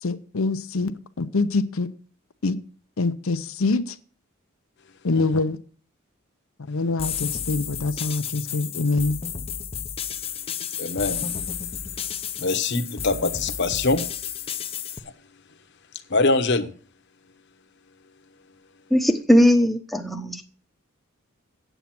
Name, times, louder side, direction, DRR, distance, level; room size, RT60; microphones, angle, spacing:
voice 1, 0.0-1.9 2.4-2.6 3.0-4.0 5.0-5.6 6.7-9.2, left 3 dB, 85° left, 0.7 m, -25 dB
sound 1, 7.0-15.0, left 8 dB, 30° left, 0.6 m, -32 dB
voice 2, 10.8-11.3 12.4-14.0 16.1-16.7, left 3 dB, 55° left, 1.0 m, -23 dB
voice 3, 18.9-20.4, equal, ahead, 0.9 m, -19 dB
9.0 x 8.2 x 5.9 m
head